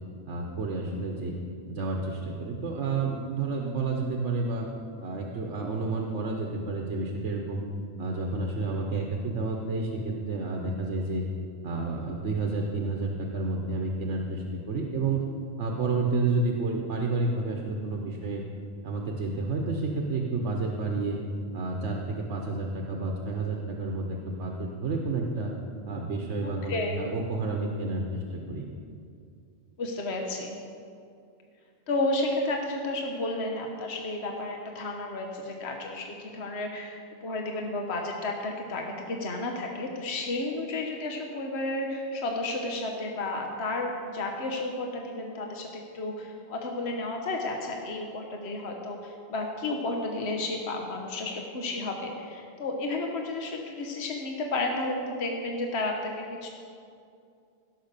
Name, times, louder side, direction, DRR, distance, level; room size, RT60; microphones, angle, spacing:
voice 1, 0.3-1.3 1.7-4.7 5.0-7.6 8.0-11.2 11.6-15.3 15.6-18.4 18.8-21.2 21.5-25.5 25.9-28.7, right 3 dB, 85° right, 1 dB, 1.3 m, -30 dB
voice 2, 26.4-27.0 29.8-30.6 31.9-37.0 37.2-56.5, left 2 dB, 65° left, 2 dB, 1.4 m, -32 dB
16.0 x 6.2 x 6.7 m, 2.4 s
omnidirectional pair, 1.2 m